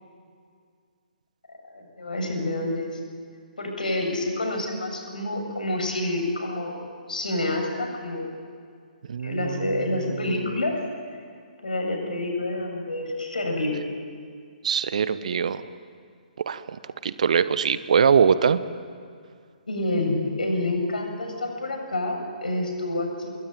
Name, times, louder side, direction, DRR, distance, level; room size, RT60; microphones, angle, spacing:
voice 1, 1.7-3.0 3.6-8.3 9.2-10.8 11.6-13.8 19.7-23.3, left 2 dB, 65° left, 2 dB, 7.5 m, -28 dB
voice 2, 9.1-10.7 14.6-15.6 16.4-16.6 17.0-18.6, right 7 dB, 50° right, 14 dB, 1.1 m, -23 dB
26.5 x 22.0 x 9.3 m, 2.2 s
figure-of-eight pair, 130°, 5 cm